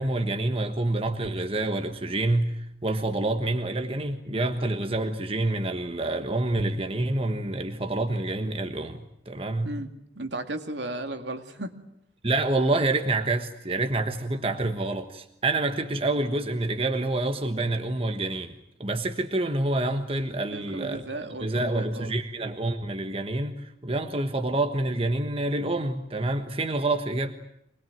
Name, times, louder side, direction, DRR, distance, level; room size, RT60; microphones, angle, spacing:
voice 1, 0.0-9.8 12.2-18.5 18.8-21.0 21.4-27.3, right 2 dB, 30° right, 6 dB, 1.4 m, -27 dB
voice 2, 10.2-11.7 20.5-22.1, right 2 dB, 70° right, 6 dB, 2.2 m, -35 dB
25.0 x 20.5 x 9.3 m, 0.77 s
head